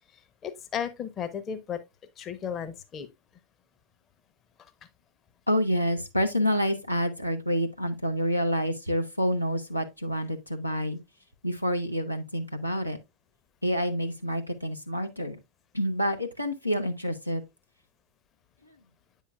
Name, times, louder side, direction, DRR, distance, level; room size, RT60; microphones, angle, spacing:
voice 1, 0.4-1.8 2.2-3.1, left 8 dB, 30° left, 0.8 m, -34 dB
voice 2, 5.5-11.0 11.4-13.0 13.6-15.4 15.7-17.4 18.6-18.8, equal, 90° left, 0.7 m, -28 dB
8.4 x 5.6 x 2.3 m
figure-of-eight pair, 90°, 0 cm